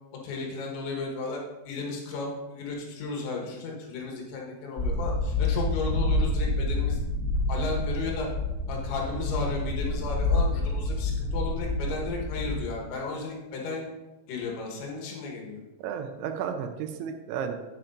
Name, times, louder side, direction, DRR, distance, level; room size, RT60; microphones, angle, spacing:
voice 1, 0.2-7.0 7.5-8.3 8.7-13.8 14.3-15.6, left 3 dB, 80° left, -1 dB, 3.5 m, -34 dB
sound 1, 4.8-12.6, left 2 dB, 25° left, 2.7 m, -28 dB
voice 2, 15.8-17.5, right 7 dB, 85° right, 5 dB, 2.4 m, -33 dB
9.6 x 8.8 x 2.5 m, 1.1 s
omnidirectional pair, 5.4 m